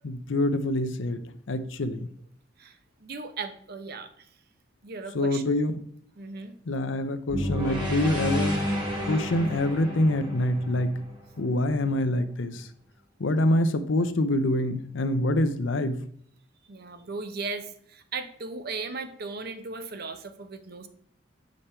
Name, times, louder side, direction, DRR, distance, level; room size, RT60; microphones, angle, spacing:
voice 1, 0.0-1.2 1.5-2.1 5.1-5.8 6.7-8.6 9.1-11.0 11.4-12.7 13.2-16.0, left 1 dB, 80° left, 9 dB, 0.7 m, -25 dB
voice 2, 2.6-4.3 4.8-5.4 6.2-6.6 16.7-20.9, right 4 dB, 55° right, 9 dB, 0.8 m, -37 dB
sound 1, 7.3-11.5, equal, 25° right, 2.2 m, -30 dB
7.2 x 5.1 x 4.3 m, 0.63 s
head